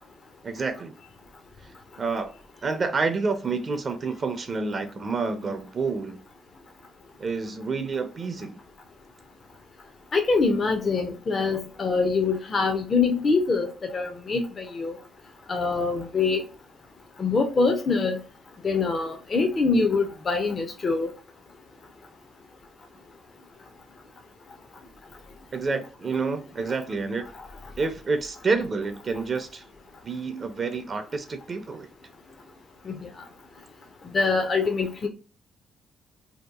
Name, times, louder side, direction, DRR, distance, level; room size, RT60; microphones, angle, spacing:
voice 1, 0.4-0.9 1.6-2.3 2.6-6.2 7.2-8.6 25.5-27.3 27.8-29.6 30.0-31.9, right 4 dB, 40° right, 0.5 m, -29 dB
voice 2, 10.1-15.0 15.5-16.4 17.2-18.2 18.6-21.1 32.8-33.1 34.1-35.1, left 4 dB, 40° left, 0.5 m, -24 dB
2.8 x 2.3 x 2.3 m
cardioid pair, 90°, 0 cm